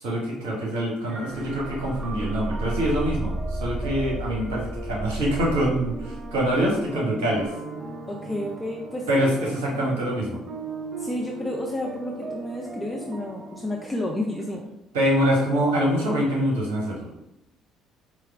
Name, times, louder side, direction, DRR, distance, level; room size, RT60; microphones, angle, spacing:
voice 1, 0.0-7.5 9.1-10.4 14.9-17.1, equal, 75° right, -4 dB, 0.9 m, -25 dB
sound 1, 1.1-14.6, right 3 dB, 40° right, 0.6 m, -39 dB
sound 2, 1.3-6.9 7.4-7.5, right 1 dB, 15° right, 0.9 m, -33 dB
voice 2, 8.1-9.0 11.0-14.7, left 1 dB, 15° left, -1 dB, 0.5 m, -31 dB
4.6 x 2.1 x 3.4 m, 0.89 s
hypercardioid pair, 55°, 0 cm